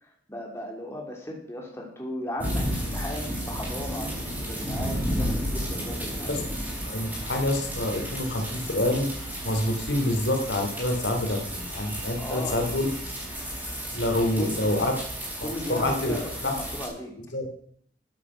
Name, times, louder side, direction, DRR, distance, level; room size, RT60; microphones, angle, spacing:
voice 1, 0.0-6.4 12.2-12.6 14.4-14.9 15.4-17.1, left 1 dB, 15° left, -1 dB, 3.0 m, -36 dB
sound 1, 2.4-16.9, equal, 10° right, 5.4 m, -33 dB
voice 2, 6.8-9.1 9.4-12.9 13.9-14.9 15.4-16.2 16.4-16.5 17.3-17.5, left 1 dB, 75° left, 3 dB, 2.8 m, -27 dB
14.0 x 8.6 x 6.2 m, 0.63 s
head